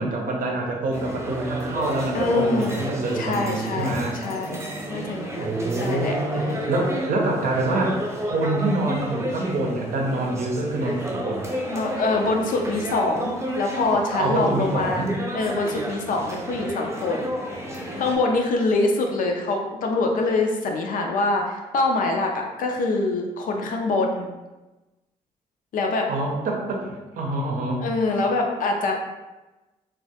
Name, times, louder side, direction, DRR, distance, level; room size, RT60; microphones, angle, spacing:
voice 1, 0.0-4.2 5.4-11.5 14.2-15.2 26.1-27.8, right 2 dB, 65° right, -1 dB, 0.6 m, -26 dB
sound 1, 0.9-18.2, right 1 dB, 20° right, 0.6 m, -32 dB
voice 2, 2.1-2.8 3.1-4.6 4.9-6.8 11.7-15.1 15.3-17.3 18.0-24.3 25.7-26.1 27.8-29.0, left 3 dB, 65° left, 2 dB, 0.4 m, -24 dB
2.2 x 2.1 x 2.8 m, 1.1 s
supercardioid pair, 60°, 15 cm